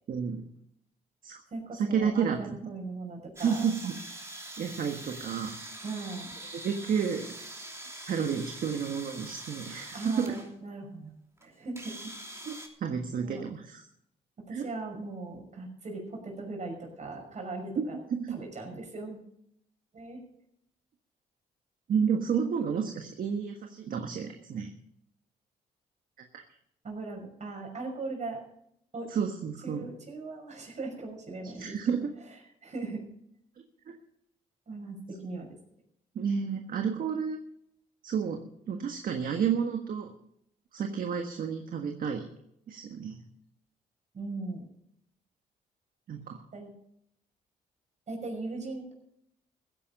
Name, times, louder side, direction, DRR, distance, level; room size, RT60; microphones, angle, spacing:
voice 1, 0.1-0.4 1.2-1.4 1.7-2.7 3.4-4.0 4.6-5.6 6.6-7.2 8.1-10.3 12.5-13.8 14.5-14.7 17.8-17.9 18.1-18.4 21.9-24.7 29.1-29.9 31.5-32.0 36.1-37.4 38.0-40.1 40.7-42.2 42.7-43.2 46.1-46.4, right 7 dB, 65° right, 4 dB, 1.5 m, -31 dB
voice 2, 1.5-3.6 5.8-6.3 9.9-11.2 11.4-12.1 13.2-13.4 14.5-18.0 18.3-19.2 19.9-20.2 26.8-28.4 28.9-29.1 29.6-32.1 32.6-33.1 34.7-35.6 44.1-44.6 46.5-46.7 48.1-48.9, right 3 dB, 50° right, 2 dB, 5.9 m, -39 dB
sound 1, 3.4-10.5 11.4-11.5 11.8-12.7, right 1 dB, 15° right, 3.1 m, -44 dB
15.5 x 10.5 x 5.4 m, 0.73 s
cardioid pair, 80°, 16 cm